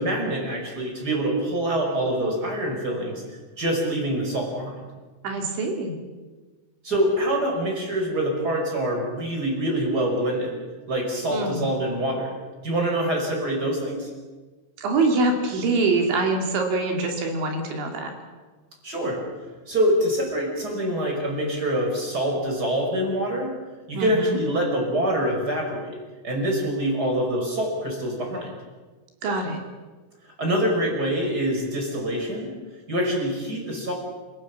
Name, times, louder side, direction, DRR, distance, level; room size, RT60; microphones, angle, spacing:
voice 1, 0.0-3.2 3.6-4.7 6.8-10.5 10.9-12.3 12.6-14.1 18.8-19.2 19.7-23.5 23.9-26.0 26.2-28.5 30.4-32.5 32.9-33.9, right 1 dB, 20° right, 1 dB, 5.4 m, -25 dB
voice 2, 5.2-6.0 11.3-11.7 14.8-18.1 23.9-24.4 29.2-29.6, right 3 dB, 65° right, 3 dB, 4.7 m, -24 dB
28.0 x 17.5 x 7.3 m, 1.3 s
omnidirectional pair, 5.9 m